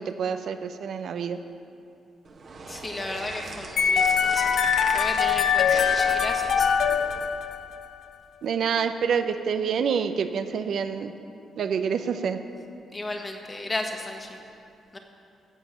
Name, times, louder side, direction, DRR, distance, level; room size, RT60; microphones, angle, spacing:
voice 1, 0.0-1.4 8.4-11.1 11.6-12.4, right 6 dB, 65° right, 8 dB, 0.6 m, -27 dB
sound 1, 2.2-7.3, right 3 dB, 50° right, 1.4 m, -39 dB
voice 2, 2.7-4.6 4.9-6.7 12.9-14.4 14.9-15.0, left 2 dB, 25° left, 3 dB, 1.5 m, -34 dB
sound 2, 3.8-7.9, left 7 dB, 70° left, 0.7 m, -23 dB
14.5 x 5.3 x 8.3 m, 2.5 s
cardioid pair, 80°, 0 cm